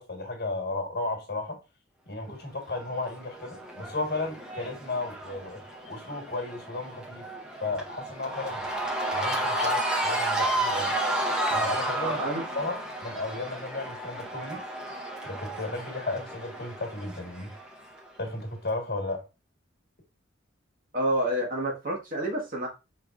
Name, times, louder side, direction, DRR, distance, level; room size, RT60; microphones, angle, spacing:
voice 1, 0.0-1.6 2.1-7.3 7.6-8.6 9.1-10.9 11.5-12.2 12.5-12.8 13.0-14.6 15.2-17.5 18.2-19.3, left 2 dB, 55° left, 1.3 m, -34 dB
Cheering / Crowd, 2.7-18.0, right 1 dB, 5° right, 0.6 m, -32 dB
voice 2, 12.0-12.4 20.9-22.7, right 1 dB, 45° right, 1.3 m, -28 dB
4.7 x 3.4 x 2.4 m
head